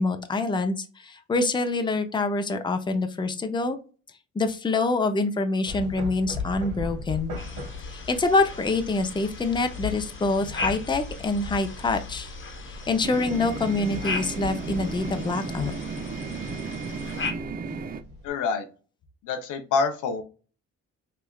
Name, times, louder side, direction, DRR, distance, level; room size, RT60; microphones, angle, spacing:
voice 1, 0.0-3.8 4.3-7.4 7.9-12.3 12.7-15.7, left 3 dB, 15° left, 6 dB, 0.6 m, -26 dB
sound 1, 5.6-18.3, left 4 dB, 85° right, 1.4 m, -38 dB
sound 2, 7.4-17.3, left 4 dB, 40° left, 1.0 m, -38 dB
sound 3, 13.0-18.0, right 5 dB, 30° right, 0.5 m, -34 dB
voice 2, 18.2-18.7 19.2-20.2, left 5 dB, 85° left, 7 dB, 0.8 m, -26 dB
3.4 x 3.3 x 2.3 m, 0.35 s
cardioid pair, 90°, 30 cm